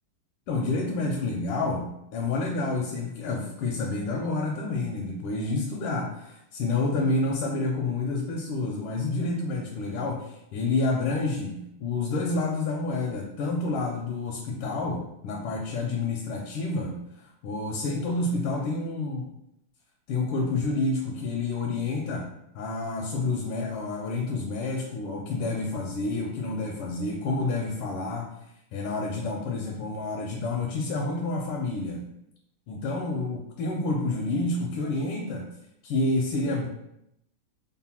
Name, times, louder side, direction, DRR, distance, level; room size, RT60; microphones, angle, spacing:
voice 1, 0.5-19.3 20.1-22.3 22.5-28.3 28.7-32.0 32.7-35.5 35.8-36.7, left 3 dB, 80° left, -1 dB, 1.5 m, -29 dB
3.7 x 2.1 x 4.2 m, 0.80 s
omnidirectional pair, 2.4 m